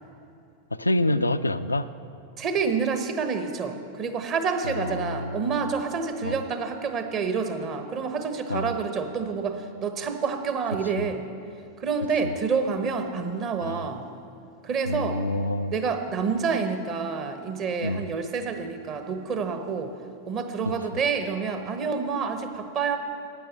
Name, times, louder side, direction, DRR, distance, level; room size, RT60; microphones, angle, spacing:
voice 1, 0.8-1.9 4.6-5.6 6.2-6.4 8.5-8.7 11.0-11.1 12.2-12.3 13.6-13.9 14.9-15.7 17.8-18.1 20.6-21.0, left 1 dB, 80° left, 11 dB, 0.3 m, -27 dB
voice 2, 2.4-11.2 11.8-14.1 14.6-15.2 15.7-19.9 20.3-23.0, right 5 dB, 35° right, 7 dB, 1.0 m, -28 dB
10.0 x 9.1 x 6.7 m, 2.6 s
figure-of-eight pair, 90°, 0 cm